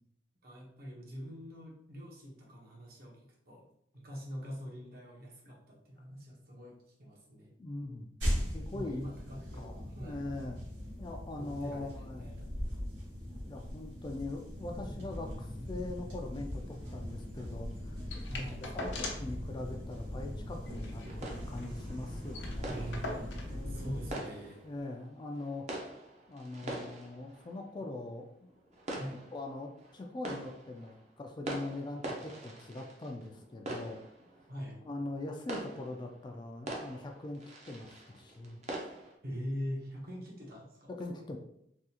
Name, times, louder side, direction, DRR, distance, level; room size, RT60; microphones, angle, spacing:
voice 1, 0.4-3.6 3.9-7.5 8.7-10.3 11.4-12.4 18.3-18.6 22.6-23.4 23.7-24.7 26.6-26.7 28.9-29.2 34.5-34.8 39.2-40.9, equal, 60° right, -2 dB, 1.0 m, -43 dB
voice 2, 7.6-8.1 8.5-9.1 9.5-9.7 10.0-10.6 11.0-12.3 13.4-18.0 18.5-22.8 23.5-24.0 24.6-25.7 26.3-28.3 29.3-34.0 34.9-38.6 40.9-41.4, left 2 dB, 25° left, 3 dB, 0.3 m, -42 dB
sound 1, 8.2-24.1, equal, 85° right, 1.4 m, -40 dB
sound 2, 18.1-19.4 19.7-19.8 20.1-20.3 20.7-21.8 22.0-22.1 22.3-23.6 24.5-24.6, left 2 dB, 80° left, 0.6 m, -42 dB
sound 3, 21.1-39.1, right 1 dB, 40° right, 0.6 m, -45 dB
3.6 x 2.4 x 2.8 m, 0.73 s
head